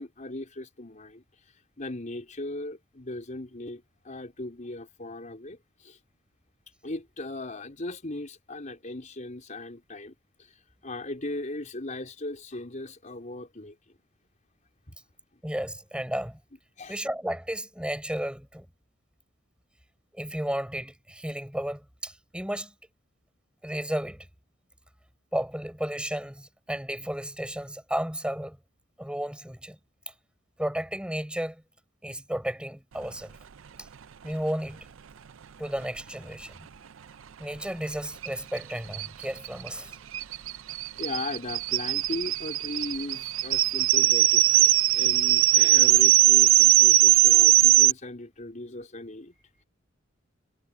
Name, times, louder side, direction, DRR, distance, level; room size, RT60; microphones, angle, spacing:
voice 1, 0.0-6.0 6.8-13.8 14.9-15.0 16.8-17.0 41.0-49.6, left 2 dB, 40° left, 4.3 m, -38 dB
voice 2, 15.4-16.4 16.9-18.7 20.1-22.7 23.6-24.3 25.3-28.6 29.0-29.8 30.6-31.6 32.0-33.3 34.2-34.9 35.6-36.5 37.4-39.9, right 1 dB, 5° right, 5.3 m, -33 dB
sound 1, 38.2-38.3 38.6-38.7 38.9-47.9, right 15 dB, 75° right, 0.5 m, -20 dB
head